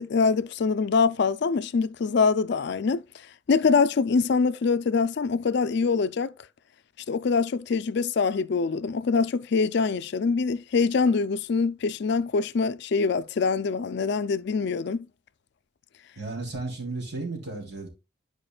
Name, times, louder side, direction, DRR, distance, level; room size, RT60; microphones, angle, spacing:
voice 1, 0.0-3.0 3.5-6.3 7.1-15.0, left 5 dB, 55° left, 0.4 m, -24 dB
voice 2, 16.2-17.9, right 3 dB, 55° right, 3.2 m, -34 dB
11.0 x 5.0 x 2.3 m
head